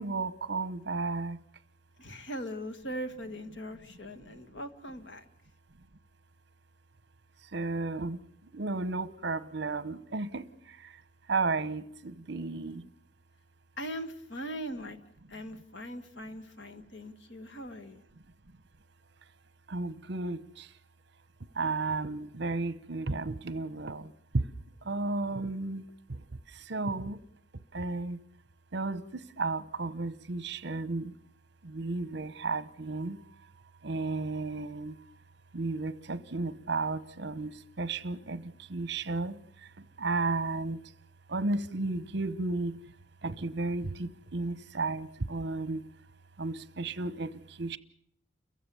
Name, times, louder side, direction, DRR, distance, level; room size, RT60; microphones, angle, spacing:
voice 1, 0.0-1.4 7.5-8.2 8.5-10.4 11.3-12.8 19.7-20.4 21.6-24.1 24.3-24.4 24.9-25.8 26.7-27.2 27.7-28.2 28.7-29.0 29.4-31.1 31.7-33.2 33.8-34.9 35.5-37.5 37.8-38.4 38.7-39.4 40.0-40.8 41.3-42.8 43.2-45.8 46.4-47.3 47.6-47.8, right 3 dB, 60° right, 0.9 m, -33 dB
voice 2, 2.0-5.2 13.8-15.0 15.3-18.0, equal, 70° left, 1.7 m, -40 dB
29.5 x 15.5 x 7.0 m
head